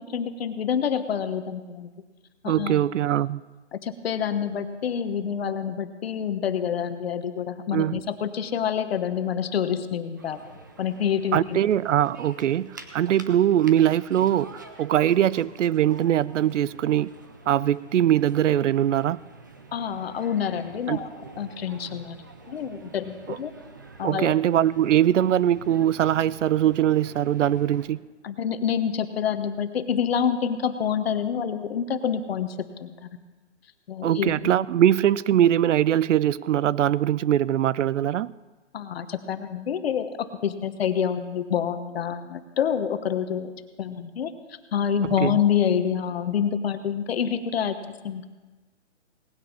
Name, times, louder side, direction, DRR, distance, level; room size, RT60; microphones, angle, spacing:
voice 1, 0.1-1.9 2.4-2.8 3.7-10.4 10.8-11.6 19.7-22.2 22.5-23.5 24.0-24.3 28.2-33.1 33.9-34.3 38.7-43.5 43.8-44.3 44.7-47.8 48.0-48.3, left 8 dB, 55° left, 9 dB, 1.2 m, -27 dB
voice 2, 2.5-3.4 7.7-8.0 11.3-14.5 14.8-17.1 17.5-19.2 20.9-21.0 23.3-23.4 24.0-28.0 34.0-38.3 45.2-45.3, right 11 dB, 85° right, 21 dB, 0.5 m, -22 dB
sound 1, 10.2-27.9, right 3 dB, 20° right, 0.4 m, -46 dB
18.5 x 9.4 x 5.5 m, 1.3 s
hypercardioid pair, 160°, 36 cm